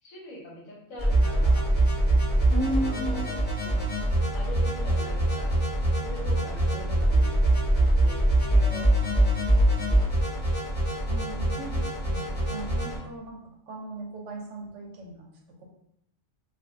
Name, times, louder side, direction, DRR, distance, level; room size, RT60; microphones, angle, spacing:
voice 1, 0.0-1.7 2.5-4.0 4.3-5.6 6.0-10.3, equal, 80° left, -3 dB, 1.3 m, -43 dB
sound 1, 1.0-13.0, right 1 dB, 10° left, 0.8 m, -24 dB
voice 2, 2.5-3.3 11.1-15.3 15.6-15.7, right 1 dB, 70° right, 0 dB, 0.9 m, -35 dB
3.2 x 2.3 x 2.6 m, 0.76 s
omnidirectional pair, 1.4 m